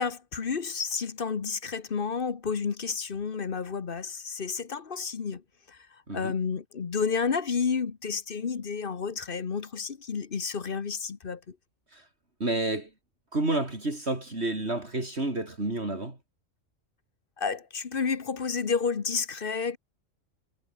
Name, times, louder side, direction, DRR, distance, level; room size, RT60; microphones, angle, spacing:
voice 1, 0.0-5.4 5.7-5.8 6.1-11.5 17.4-19.8, left 5 dB, 45° left, 1.2 m, -31 dB
voice 2, 12.4-12.9 13.3-16.2, right 2 dB, 55° right, 4.9 m, -30 dB
omnidirectional pair, 1.3 m